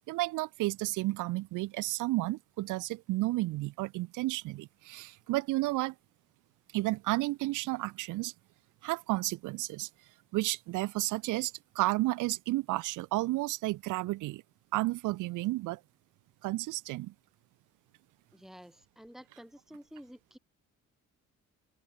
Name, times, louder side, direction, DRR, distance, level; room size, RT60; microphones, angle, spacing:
voice 1, 0.1-5.9 6.7-8.3 8.8-9.9 10.3-14.4 14.7-15.8 16.4-17.1, right 19 dB, 90° right, 0.6 m, -32 dB
voice 2, 18.3-20.4, equal, ahead, 2.5 m, -51 dB
open air
cardioid pair, 90°, 30 cm